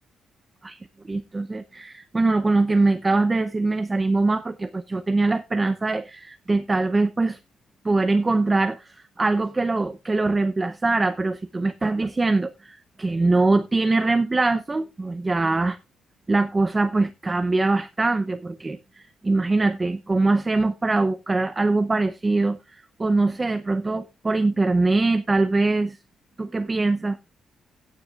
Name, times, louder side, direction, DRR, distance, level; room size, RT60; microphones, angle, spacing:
voice 1, 0.6-7.4 7.8-15.8 16.3-26.0 26.4-27.2, right 3 dB, 15° right, 0.7 m, -23 dB
16.5 x 9.7 x 2.4 m
cardioid pair, 165°, 0 cm